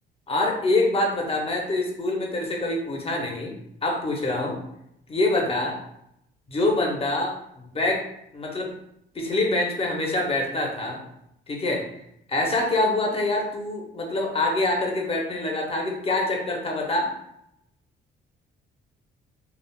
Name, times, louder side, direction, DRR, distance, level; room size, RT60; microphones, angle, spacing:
voice 1, 0.3-3.6 3.8-4.6 5.1-5.8 6.5-8.0 8.3-8.7 9.1-11.0 11.5-11.8 12.3-17.1, left 2 dB, 30° left, 0 dB, 0.8 m, -25 dB
3.3 x 2.4 x 2.3 m, 0.78 s
cardioid pair, 90°, 20 cm